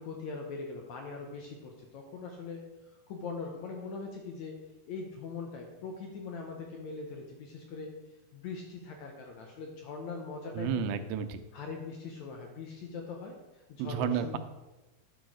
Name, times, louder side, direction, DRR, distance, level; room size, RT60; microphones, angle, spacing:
voice 1, 0.0-4.6 4.9-7.9 8.3-11.0 11.5-14.4, left 4 dB, 70° left, 2 dB, 1.8 m, -41 dB
voice 2, 10.5-11.4 13.8-14.4, right 7 dB, 90° right, 10 dB, 2.6 m, -31 dB
9.2 x 6.2 x 4.8 m, 1.1 s
omnidirectional pair, 4.3 m